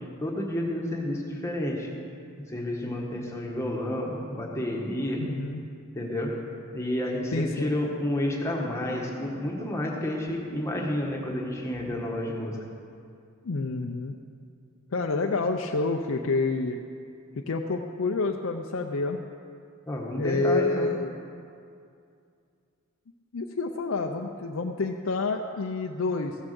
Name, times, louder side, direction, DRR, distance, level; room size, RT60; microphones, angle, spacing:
voice 1, 0.2-1.9 2.5-5.2 5.9-6.3 6.7-12.5 19.9-20.9, left 1 dB, 15° left, -1 dB, 1.5 m, -30 dB
voice 2, 5.2-5.6 7.3-7.7 13.4-14.2 14.9-16.8 17.5-19.2 20.2-21.1 23.3-26.4, left 3 dB, 70° left, 3 dB, 0.6 m, -28 dB
15.0 x 7.1 x 6.8 m, 2.4 s
head